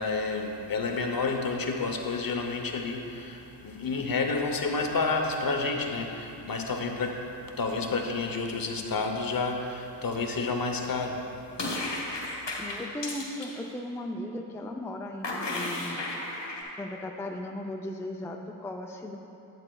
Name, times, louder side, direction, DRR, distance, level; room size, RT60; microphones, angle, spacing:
voice 1, 0.0-11.2 11.5-11.7 12.2-12.4, left 3 dB, 55° left, 3 dB, 0.8 m, -30 dB
sound 1, 11.6-13.5 15.2-16.6, left 2 dB, 80° left, 1.6 m, -33 dB
voice 2, 12.6-16.0 16.8-19.2, left 1 dB, 5° left, 3 dB, 0.4 m, -37 dB
10.5 x 9.1 x 2.3 m, 2.8 s
wide cardioid pair, 85°, 43 cm